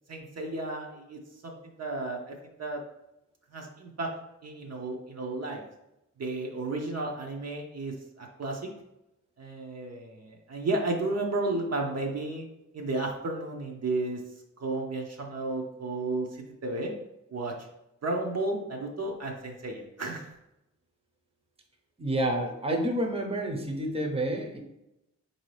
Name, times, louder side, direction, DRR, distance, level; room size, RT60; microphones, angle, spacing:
voice 1, 0.1-2.8 3.5-4.1 4.4-5.6 6.2-8.6 9.4-12.4 12.7-14.2 14.6-16.9 17.3-17.5 18.0-20.3, right 2 dB, 55° right, 1 dB, 0.7 m, -33 dB
voice 2, 22.0-24.6, right 1 dB, 20° right, 1 dB, 0.7 m, -29 dB
3.8 x 2.7 x 3.2 m, 0.88 s
cardioid pair, 55°, 31 cm